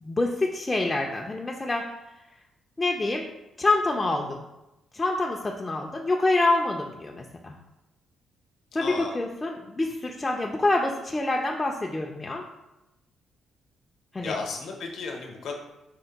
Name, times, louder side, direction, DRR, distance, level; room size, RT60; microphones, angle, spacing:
voice 1, 0.0-1.9 2.8-3.3 3.6-4.4 4.9-7.6 8.7-12.4 14.1-14.4, left 2 dB, 20° left, 0 dB, 0.3 m, -26 dB
voice 2, 8.7-9.1 14.2-15.5, left 4 dB, 75° left, 1 dB, 0.7 m, -34 dB
4.3 x 2.1 x 3.9 m, 0.96 s
cardioid pair, 90°, 0 cm